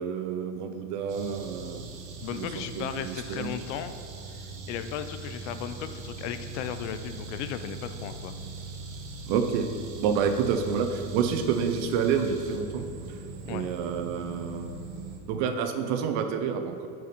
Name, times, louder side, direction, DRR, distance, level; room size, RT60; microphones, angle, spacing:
voice 1, 0.0-1.9 2.3-3.6 9.3-9.7 9.9-13.2 13.5-14.7 15.3-16.9, right 6 dB, 50° right, 7 dB, 0.5 m, -29 dB
sound 1, 1.1-15.2, right 3 dB, 75° right, 1.1 m, -41 dB
voice 2, 2.2-3.9 4.3-8.3 13.4-13.7, left 9 dB, 85° left, 10 dB, 0.5 m, -36 dB
6.2 x 4.3 x 4.1 m, 2.6 s
supercardioid pair, 160°, 35 cm